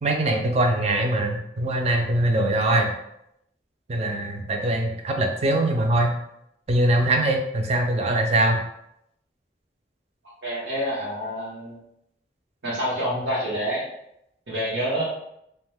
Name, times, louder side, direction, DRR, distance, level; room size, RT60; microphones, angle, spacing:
voice 1, 0.0-2.9 3.9-6.2 6.7-8.6, right 1 dB, 35° right, 3 dB, 0.4 m, -22 dB
voice 2, 10.4-11.8 12.6-13.8 14.5-15.0, equal, 85° right, -9 dB, 0.9 m, -27 dB
2.5 x 2.1 x 3.4 m, 0.78 s
head